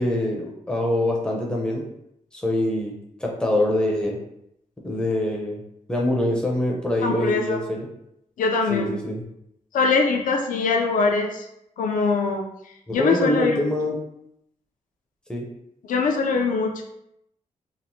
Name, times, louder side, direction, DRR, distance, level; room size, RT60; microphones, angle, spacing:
voice 1, 0.0-1.8 2.3-4.2 4.8-5.6 5.9-7.9 8.7-9.2 12.9-13.9 15.3-15.5, left 1 dB, 5° left, -2 dB, 0.4 m, -24 dB
voice 2, 7.0-7.6 8.4-8.9 9.7-11.5 11.8-12.4 12.9-13.7 15.8-16.8, left 4 dB, 85° left, 2 dB, 0.4 m, -22 dB
2.9 x 2.1 x 2.6 m, 0.79 s
wide cardioid pair, 180°, 13 cm